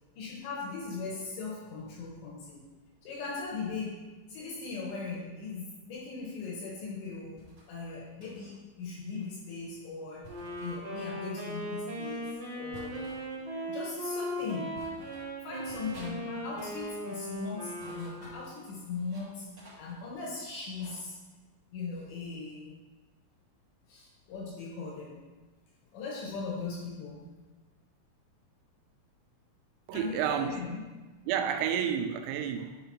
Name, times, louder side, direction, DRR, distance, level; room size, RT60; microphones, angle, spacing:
voice 1, 0.2-2.7 3.0-13.0 13.7-14.8 15.4-19.5 19.8-21.2 21.7-22.8 23.9-25.2 25.9-27.4 29.9-30.9, left 4 dB, 70° left, -4 dB, 3.0 m, -39 dB
sound 1, 7.4-7.7 8.2-8.6 10.2-10.8 12.7-13.2 14.1-14.2 14.7-15.3 15.7-16.2 16.5-16.9 17.6-19.3 19.6-21.0, right 1 dB, 40° right, 1.5 m, -53 dB
Wind instrument woodwind instrument, 10.3-18.6, equal, 60° right, 1.6 m, -38 dB
voice 2, 29.9-30.5 31.3-32.8, right 8 dB, 85° right, 6 dB, 3.3 m, -30 dB
10.5 x 5.2 x 2.9 m, 1.2 s
omnidirectional pair, 6.0 m